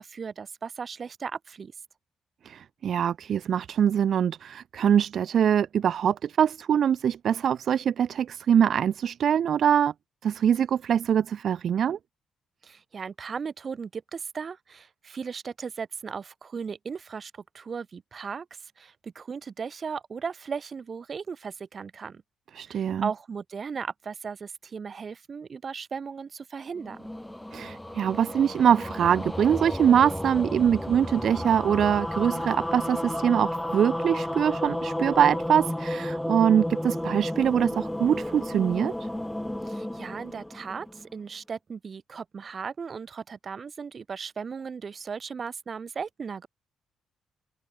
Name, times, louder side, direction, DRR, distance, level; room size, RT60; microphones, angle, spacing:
voice 1, 0.0-1.7 12.6-18.5 18.8-22.2 22.7-27.1 39.6-46.5, right 6 dB, 40° right, 4.2 m, -36 dB
voice 2, 2.4-9.9 10.2-12.0 22.5-23.1 27.5-39.1, right 8 dB, 60° right, 0.4 m, -23 dB
sound 1, 26.8-41.2, left 1 dB, 5° left, 0.8 m, -32 dB
cardioid pair, 90°, 0 cm